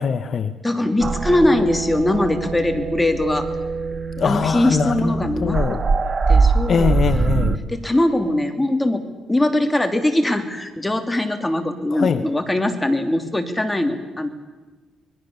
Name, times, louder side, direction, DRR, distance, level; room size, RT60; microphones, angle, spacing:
voice 1, 0.0-0.5 4.2-5.8 6.7-7.6 11.9-12.2, left 6 dB, 50° left, 10 dB, 1.1 m, -22 dB
voice 2, 0.6-3.5 4.2-5.8 6.3-7.0 7.7-9.0 9.3-14.3, left 1 dB, 10° left, 7 dB, 3.0 m, -21 dB
sound 1, 1.0-7.6, right 4 dB, 35° right, 1.6 m, -22 dB
27.0 x 21.5 x 6.9 m, 1.3 s
cardioid pair, 90°, 0 cm